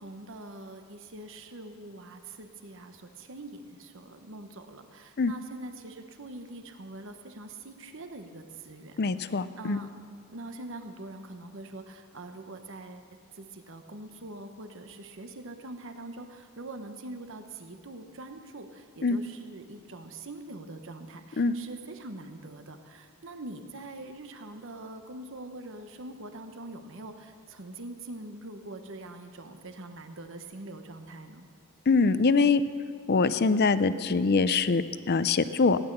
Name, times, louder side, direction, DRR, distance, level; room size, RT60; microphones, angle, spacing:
voice 1, 0.0-10.0 10.3-13.1 13.3-31.5, right 2 dB, 60° right, 7 dB, 1.0 m, -44 dB
voice 2, 9.0-9.8 19.0-19.2 21.4-21.5 31.9-32.6 33.1-35.8, left 4 dB, 45° left, 14 dB, 0.5 m, -23 dB
16.0 x 11.0 x 6.7 m, 2.1 s
head